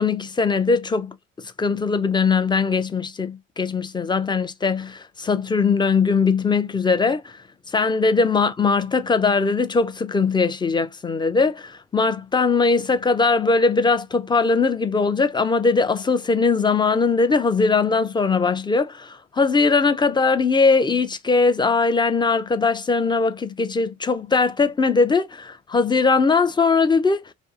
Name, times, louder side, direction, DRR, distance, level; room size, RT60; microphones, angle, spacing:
voice 1, 0.0-7.2 7.7-27.3, left 4 dB, 15° left, 0.4 m, -20 dB
2.6 x 2.4 x 2.4 m
figure-of-eight pair, 45°, 38 cm